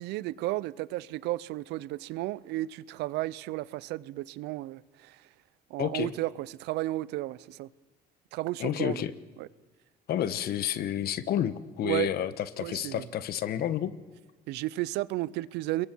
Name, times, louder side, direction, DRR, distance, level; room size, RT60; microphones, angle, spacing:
voice 1, 0.0-5.2 5.7-7.7 8.3-9.0 9.4-9.5 11.8-12.1 12.6-13.1 14.5-15.9, right 17 dB, 90° right, 0.6 m, -33 dB
voice 2, 5.8-6.1 8.6-9.1 10.1-13.9, left 10 dB, 65° left, 1.2 m, -30 dB
30.0 x 22.0 x 4.6 m
cardioid pair, 110°, 17 cm